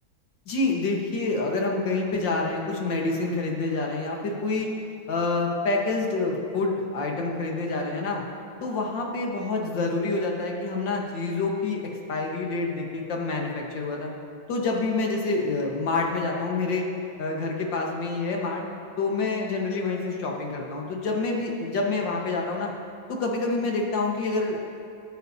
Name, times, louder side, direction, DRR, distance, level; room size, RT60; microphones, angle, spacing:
voice 1, 0.5-4.7 5.1-8.2 8.6-11.8 12.1-14.1 14.5-16.8 17.2-18.6 19.0-22.7 23.1-24.6, left 3 dB, 65° left, 0 dB, 2.2 m, -27 dB
24.0 x 9.1 x 2.8 m, 2.5 s
omnidirectional pair, 2.1 m